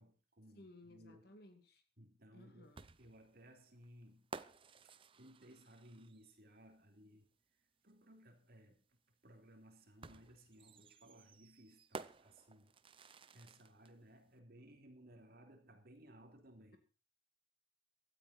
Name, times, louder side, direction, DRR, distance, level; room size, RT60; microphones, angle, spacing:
voice 1, 0.0-1.3 2.0-4.3 4.8-7.3 7.8-8.9 9.2-12.7 13.3-16.8, right 1 dB, 55° right, 3.2 m, -61 dB
voice 2, 0.5-1.8 2.3-2.8, left 1 dB, 55° left, 2.5 m, -59 dB
sound 1, 2.8-6.4 7.9-8.0 10.0-13.9, right 4 dB, 30° right, 0.6 m, -54 dB
16.0 x 13.0 x 4.4 m
head